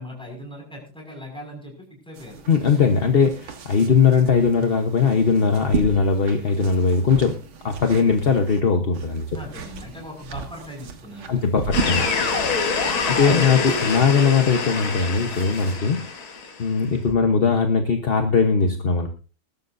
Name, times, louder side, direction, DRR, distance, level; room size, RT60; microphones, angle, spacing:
voice 1, 0.0-2.4 9.3-11.3, left 1 dB, ahead, 0 dB, 5.8 m, -40 dB
sound 1, 2.1-8.6 8.9-15.8, right 5 dB, 85° right, 2.2 m, -35 dB
voice 2, 2.5-7.4 7.6-9.3 11.3-12.1 13.1-16.0 16.6-19.1, left 5 dB, 40° left, 4 dB, 1.0 m, -19 dB
sound 2, 11.7-16.7, left 4 dB, 85° left, 2.7 m, -25 dB
21.0 x 12.0 x 2.7 m, 0.35 s
omnidirectional pair, 2.2 m